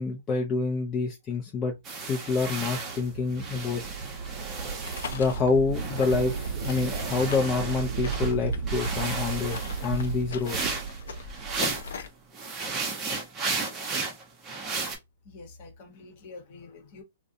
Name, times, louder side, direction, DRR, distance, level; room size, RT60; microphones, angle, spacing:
voice 1, 0.0-1.7 2.1-3.8 5.1-10.7, left 4 dB, 25° left, 0.5 m, -27 dB
sound 1, 1.8-5.4 5.7-8.3 8.7-12.0 12.3-15.0, right 4 dB, 20° right, 0.8 m, -34 dB
sound 2, 1.9-12.1, right 6 dB, 55° right, 0.4 m, -35 dB
sound 3, 4.8-12.1, left 6 dB, 70° left, 0.5 m, -41 dB
voice 2, 15.2-17.0, left 3 dB, 45° left, 1.0 m, -46 dB
2.5 x 2.1 x 2.5 m
hypercardioid pair, 125°, 0 cm